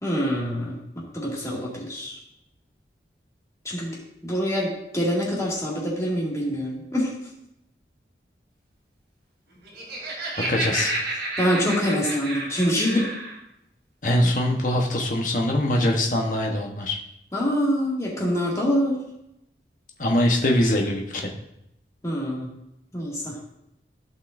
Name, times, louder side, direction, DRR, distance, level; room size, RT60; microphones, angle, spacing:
voice 1, 0.0-2.2 3.6-4.0 4.2-7.1 11.4-13.1 17.3-19.0 22.0-22.5 22.9-23.4, equal, 20° left, -5 dB, 2.3 m, -25 dB
Laughter, 9.5-13.4, right 2 dB, 85° right, 3.2 m, -30 dB
voice 2, 10.5-10.9 14.0-17.0 20.0-21.3, left 1 dB, 45° left, 0 dB, 1.2 m, -22 dB
15.5 x 5.5 x 2.6 m, 0.82 s
head